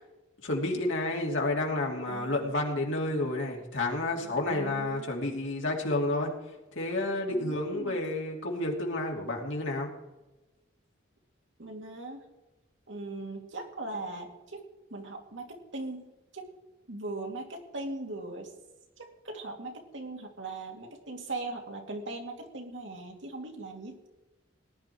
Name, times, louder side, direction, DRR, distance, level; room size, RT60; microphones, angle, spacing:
voice 1, 0.4-6.3 6.7-9.9, left 2 dB, 80° left, 0 dB, 3.0 m, -30 dB
voice 2, 2.1-2.6 4.1-5.1 7.3-8.0 11.6-12.3 12.9-14.6 14.9-16.5 16.9-18.5 19.0-24.1, right 2 dB, 75° right, 2 dB, 2.6 m, -40 dB
18.5 x 10.5 x 4.6 m, 1.1 s
head